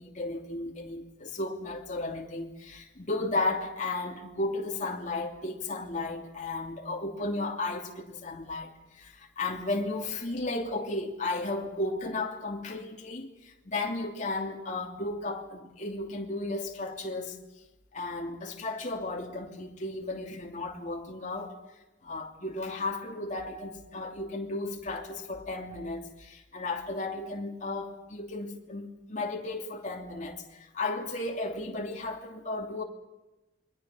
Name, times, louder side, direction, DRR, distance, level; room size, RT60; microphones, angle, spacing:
voice 1, 0.0-17.4 17.9-21.5 22.0-32.8, left 2 dB, 45° left, 2.9 m, -34 dB
29.0 x 23.0 x 5.7 m
head